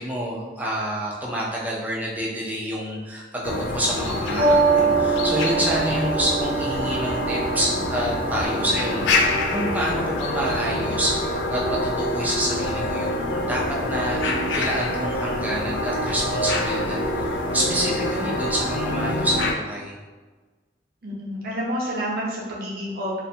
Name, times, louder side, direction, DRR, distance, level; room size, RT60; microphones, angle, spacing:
voice 1, 0.0-13.6 13.9-20.0, equal, 10° right, -4 dB, 0.4 m, -28 dB
sound 1, 3.4-19.5, left 1 dB, 75° left, 0.3 m, -26 dB
sound 2, 4.4-9.6, right 4 dB, 90° right, 0.6 m, -25 dB
voice 2, 21.0-23.2, equal, 55° right, -5 dB, 0.7 m, -29 dB
2.5 x 2.2 x 2.7 m, 1.3 s
head